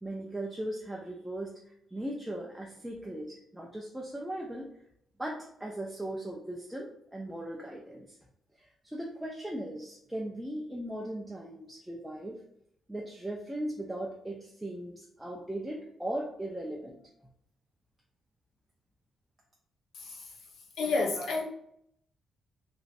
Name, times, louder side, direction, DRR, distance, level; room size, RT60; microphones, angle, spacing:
voice 1, 0.0-1.5 1.9-4.7 5.2-8.2 8.6-12.4 12.9-17.0, right 1 dB, 5° right, -2 dB, 0.3 m, -38 dB
voice 2, 19.9-20.3 20.8-21.4, left 3 dB, 80° left, -1 dB, 0.7 m, -30 dB
3.0 x 2.5 x 2.5 m, 0.73 s
wide cardioid pair, 175°, 0 cm